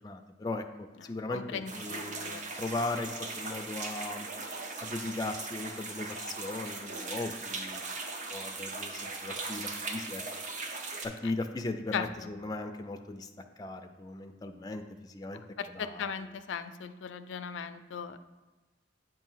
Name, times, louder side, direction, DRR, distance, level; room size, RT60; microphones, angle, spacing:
voice 1, 0.0-4.3 4.8-7.8 8.3-10.2 11.0-13.3 13.6-15.4 15.7-16.1, left 2 dB, 20° left, 5 dB, 0.4 m, -38 dB
voice 2, 1.0-2.5 11.9-12.0 15.6-18.2, left 7 dB, 90° left, 11 dB, 0.4 m, -38 dB
sound 1, 1.7-11.1, right 3 dB, 45° right, 0.6 m, -39 dB
7.9 x 2.7 x 5.6 m, 1.2 s
head